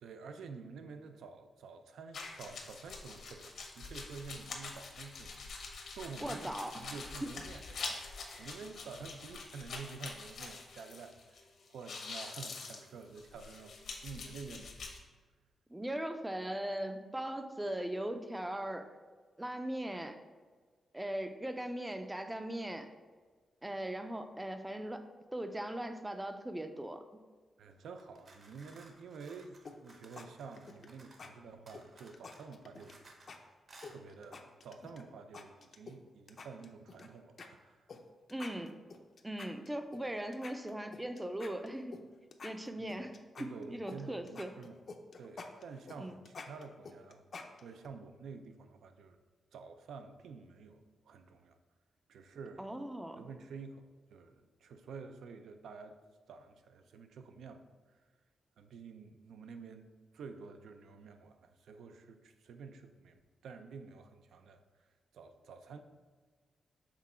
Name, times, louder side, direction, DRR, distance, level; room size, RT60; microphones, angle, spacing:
voice 1, 0.0-11.4 11.7-13.8 14.0-14.7 27.6-33.0 33.9-37.9 42.8-42.9 43.4-44.8 45.2-47.2 47.6-49.2 49.5-51.6 52.1-52.7 53.2-56.0 56.3-58.0 58.6-59.9 60.1-64.6 65.1-65.8, right 5 dB, 90° right, 8 dB, 0.5 m, -49 dB
sound 1, 2.1-11.4 11.7-15.0, left 4 dB, 70° left, 0.9 m, -45 dB
voice 2, 6.2-7.0 8.3-8.5 15.7-18.9 19.4-20.2 20.9-22.9 23.6-25.0 25.3-27.0 38.3-38.8 39.2-42.0 42.4-44.5 46.0-46.2 52.6-53.3, right 1 dB, 10° right, 8 dB, 0.4 m, -39 dB
sound 2, 28.0-31.3 31.7-33.4 33.7-34.0, right 2 dB, 40° right, 0.8 m, -59 dB
sound 3, 29.7-30.3 30.6-30.9 31.2-31.3 31.7-33.0 33.3-33.4 33.8-35.0 35.3-36.0 36.3-37.1 37.4-37.5 37.9-38.0 38.3-40.0 40.3-42.0 42.3-44.0 44.3-47.9, left 4 dB, 45° left, 0.5 m, -49 dB
6.0 x 3.7 x 4.3 m, 1.5 s
wide cardioid pair, 145°, 0 cm